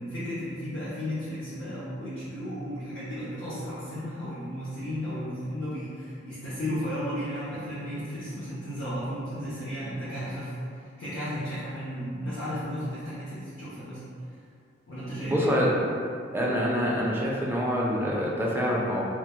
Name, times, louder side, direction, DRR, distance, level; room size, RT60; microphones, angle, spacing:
voice 1, 0.0-10.5 11.0-14.0 14.9-15.5, equal, 75° left, -11 dB, 0.6 m, -34 dB
voice 2, 15.2-15.9 16.3-19.1, equal, 10° right, -5 dB, 0.3 m, -26 dB
2.1 x 2.1 x 2.9 m, 2.4 s
head